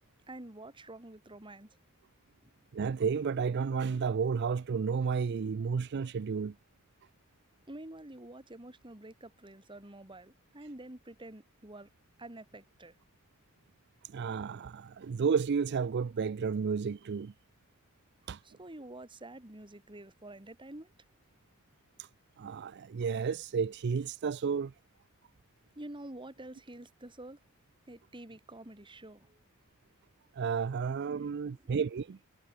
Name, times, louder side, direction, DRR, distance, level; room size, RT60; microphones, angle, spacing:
voice 1, 0.3-1.8 2.4-2.5 7.7-11.9 12.2-12.9 18.4-20.9 25.8-27.4 27.9-29.4 31.5-31.6, right 1 dB, 25° right, 2.2 m, -48 dB
voice 2, 2.7-6.6 14.0-17.3 18.3-18.4 22.0-22.1 22.4-24.7 30.3-32.2, right 5 dB, 50° right, 0.4 m, -32 dB
head